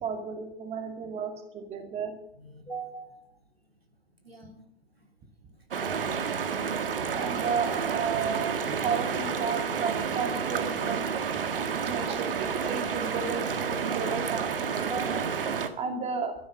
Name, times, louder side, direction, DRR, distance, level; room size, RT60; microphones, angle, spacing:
voice 1, 0.0-2.1 7.1-8.6 8.8-11.1 11.9-15.2 15.7-16.3, right 6 dB, 20° right, 5 dB, 2.3 m, -33 dB
voice 2, 2.3-3.4 4.2-4.6 14.9-15.6, right 4 dB, 85° right, 3 dB, 3.1 m, -40 dB
sound 1, 5.7-15.7, right 6 dB, 65° right, 1.8 m, -30 dB
13.5 x 11.0 x 7.5 m, 0.74 s
figure-of-eight pair, 110°, 30 cm